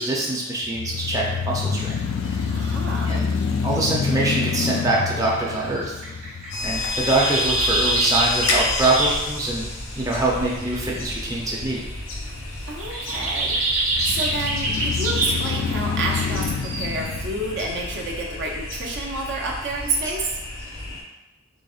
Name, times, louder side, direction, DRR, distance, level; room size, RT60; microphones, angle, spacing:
voice 1, 0.0-2.0 2.2-2.4 3.1-3.3 3.6-5.9 6.6-9.7 10.0-11.8, right 2 dB, 15° right, -4 dB, 0.5 m, -24 dB
sound 1, 0.6-8.8 9.3-9.4 13.9-18.4, left 5 dB, 65° left, 0.3 m, -28 dB
sound 2, 1.7-1.9 2.2-2.6 3.1-3.6 4.1-4.2 5.1-5.2 5.5-9.6 9.9-11.6 12.5-17.1, right 2 dB, 75° right, 1.1 m, -26 dB
voice 2, 2.5-3.2 12.7-13.5 14.0-20.3, right 2 dB, 60° right, -1 dB, 0.6 m, -29 dB
sound 3, 6.5-21.0, left 3 dB, 85° left, 0.8 m, -31 dB
3.9 x 3.5 x 2.4 m, 1.0 s
head